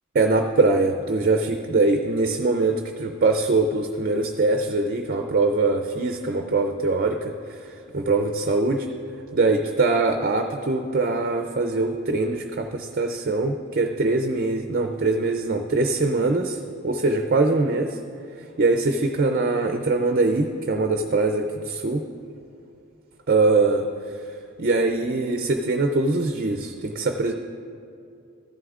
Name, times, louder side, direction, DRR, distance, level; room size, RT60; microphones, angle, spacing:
voice 1, 0.1-7.6 7.9-8.9 9.3-16.6 16.8-18.0 18.6-22.0 23.3-23.8 24.6-27.3, right 3 dB, 45° right, 5 dB, 0.4 m, -22 dB
14.5 x 11.0 x 2.4 m, 2.5 s
head